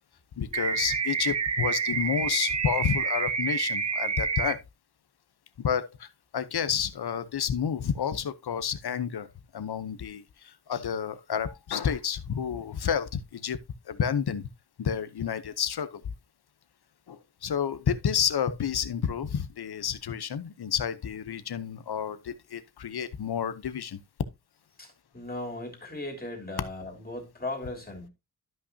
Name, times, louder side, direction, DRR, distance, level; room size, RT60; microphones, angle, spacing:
voice 1, 0.4-4.6 5.6-6.1 6.3-9.3 9.5-13.6 13.9-14.5 14.8-16.0 17.1-24.0, left 8 dB, 70° left, 0.8 m, -30 dB
sound 1, 0.5-4.5, right 5 dB, 40° right, 0.8 m, -28 dB
voice 2, 24.8-28.1, left 2 dB, 20° left, 3.1 m, -37 dB
12.5 x 5.7 x 2.7 m
wide cardioid pair, 120°, 41 cm